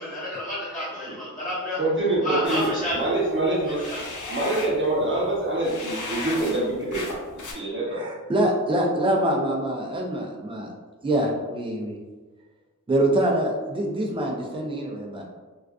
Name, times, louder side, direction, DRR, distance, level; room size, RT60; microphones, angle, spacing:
voice 1, 0.0-1.8 2.2-2.9 3.9-4.0, left 1 dB, 25° left, -11 dB, 1.0 m, -30 dB
voice 2, 1.8-3.8 4.3-7.1 7.3-8.0, right 2 dB, 40° right, -6 dB, 0.8 m, -25 dB
sound 1, 2.4-7.5, left 2 dB, 70° left, 0.6 m, -36 dB
voice 3, 7.9-10.7 11.0-11.9 12.9-15.2, right 1 dB, 15° right, -1 dB, 0.4 m, -25 dB
2.4 x 2.3 x 2.4 m, 1.3 s
wide cardioid pair, 105°, 32 cm